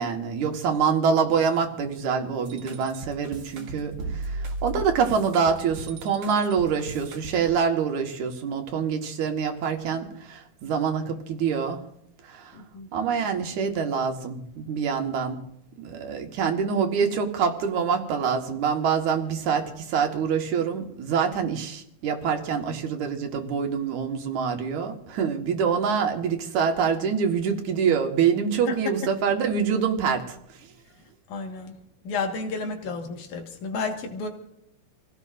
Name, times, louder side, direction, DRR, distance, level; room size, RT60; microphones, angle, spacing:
voice 1, 0.0-11.8 12.2-12.6 12.9-15.4 15.8-30.4, right 6 dB, 70° right, 4 dB, 2.7 m, -25 dB
sound 1, 2.5-7.5, right 2 dB, 85° right, 3.1 m, -36 dB
voice 2, 12.5-12.9 28.7-28.8 31.3-31.7 32.0-34.3, left 4 dB, 70° left, 3 dB, 3.0 m, -31 dB
28.0 x 16.5 x 2.5 m, 0.76 s
omnidirectional pair, 3.7 m